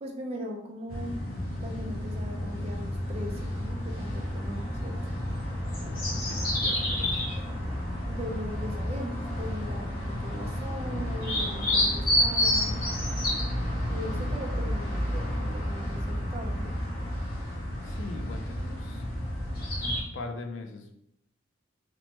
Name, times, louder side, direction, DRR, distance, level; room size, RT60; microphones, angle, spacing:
voice 1, 0.0-1.2 1.6-4.9 8.0-12.8 13.9-16.8, equal, 30° right, 1 dB, 0.4 m, -39 dB
sound 1, 0.9-20.0, left 1 dB, 45° left, 1.0 m, -30 dB
voice 2, 6.0-7.5 10.3-10.4 17.8-19.1 19.7-21.0, left 3 dB, 70° left, 5 dB, 0.4 m, -41 dB
3.0 x 2.1 x 3.0 m, 0.76 s
head